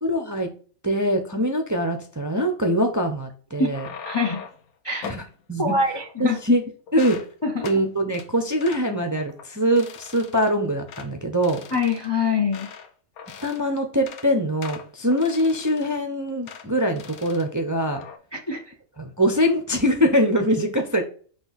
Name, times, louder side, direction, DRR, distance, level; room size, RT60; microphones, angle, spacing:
voice 1, 0.0-0.5 0.8-3.9 5.0-5.2 5.5-5.7 6.2-6.6 6.9-7.2 7.6-11.6 13.4-18.1 19.0-21.0, equal, 20° right, 4 dB, 0.6 m, -23 dB
sound 1, 3.5-4.7 5.0-5.3 5.9-6.6 6.9-7.3 7.6-7.8 8.1-8.3 8.6-8.8 9.3-9.5 9.8-10.5 10.9-11.1 11.4-12.9 13.2-13.7 13.9-14.3 14.6-16.0 16.5-16.7 17.0-17.5 17.8-18.2, left 6 dB, 90° left, 1.3 m, -40 dB
voice 2, 4.1-4.4 4.8-5.1 5.6-6.4 7.4-7.7 11.7-12.7 18.3-18.6, left 4 dB, 25° left, 6 dB, 0.6 m, -24 dB
6.2 x 3.1 x 5.8 m, 0.42 s
omnidirectional pair, 1.5 m